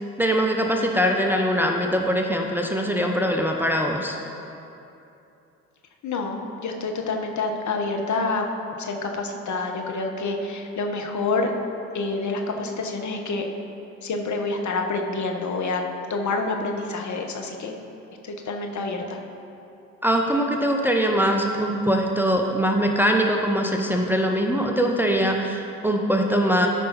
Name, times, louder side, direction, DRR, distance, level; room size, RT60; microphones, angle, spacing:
voice 1, 0.2-4.2 20.0-26.7, equal, 5° right, 1 dB, 0.8 m, -22 dB
voice 2, 6.0-8.4 8.8-11.5 11.9-13.5 14.0-15.8 16.1-17.7 18.2-19.2, left 3 dB, 45° left, 3 dB, 1.3 m, -27 dB
13.0 x 5.4 x 4.1 m, 2.8 s
hypercardioid pair, 50°, 40 cm